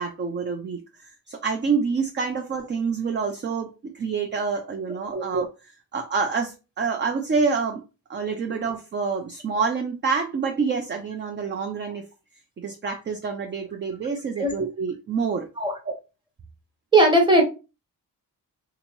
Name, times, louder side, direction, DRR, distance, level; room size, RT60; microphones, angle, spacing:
voice 1, 0.0-7.8 8.1-12.0 12.6-15.5 15.9-16.0, right 5 dB, 30° right, 4 dB, 0.4 m, -27 dB
voice 2, 16.9-17.4, right 1 dB, 15° right, 2 dB, 1.0 m, -17 dB
3.5 x 2.9 x 2.9 m, 0.30 s
wide cardioid pair, 140°, 36 cm